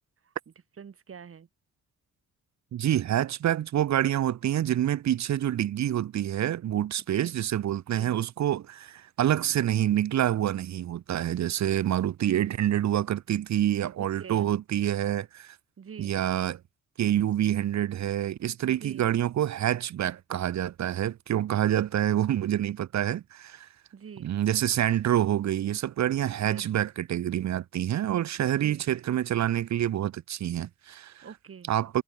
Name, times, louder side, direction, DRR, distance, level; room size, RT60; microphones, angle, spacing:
voice 1, 0.8-1.5 7.1-7.3 7.9-8.2 14.0-14.5 15.8-16.1 18.7-19.0 23.9-24.3 26.4-26.7 28.6-28.8 31.2-31.7, right 7 dB, 45° right, 6.5 m, -45 dB
voice 2, 2.7-15.5 16.0-16.6 17.0-23.7 24.2-31.2 31.7-32.0, right 11 dB, 65° right, 1.6 m, -27 dB
cardioid pair, 90°, 30 cm